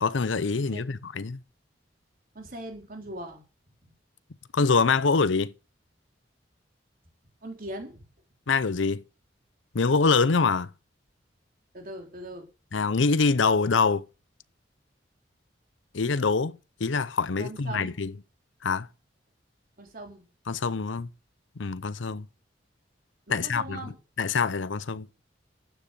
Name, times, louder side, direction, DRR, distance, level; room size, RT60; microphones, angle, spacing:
voice 1, 0.0-1.4 4.5-5.5 8.5-9.0 9.7-10.7 12.7-14.0 15.9-18.1 18.6-18.9 20.5-21.1 21.6-22.2 23.3-23.8 24.2-25.1, left 4 dB, 90° left, 0.7 m, -25 dB
voice 2, 0.5-1.0 2.3-3.4 3.8-3.9 7.4-8.0 11.7-12.5 17.4-18.0 19.8-20.3 23.3-24.0, right 1 dB, 50° right, 3.7 m, -40 dB
13.0 x 9.2 x 6.6 m
head